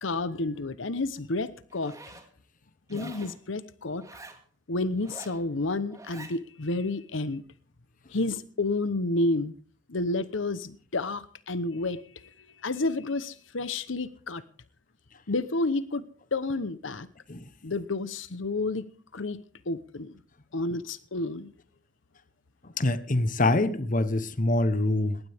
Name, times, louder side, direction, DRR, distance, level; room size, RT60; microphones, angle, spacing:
voice 1, 0.0-1.9 2.9-4.0 4.7-7.4 8.1-9.5 9.9-12.3 12.6-14.4 15.3-17.1 17.6-18.9 19.1-20.2 20.5-21.5, left 2 dB, 75° left, 1.0 m, -30 dB
Zipper (clothing), 1.7-2.3 2.9-3.4 4.0-4.4 5.0-5.4 5.9-6.4, right 2 dB, 15° right, 2.2 m, -46 dB
voice 2, 22.8-25.2, left 2 dB, 40° left, 1.0 m, -25 dB
20.5 x 18.0 x 3.6 m
head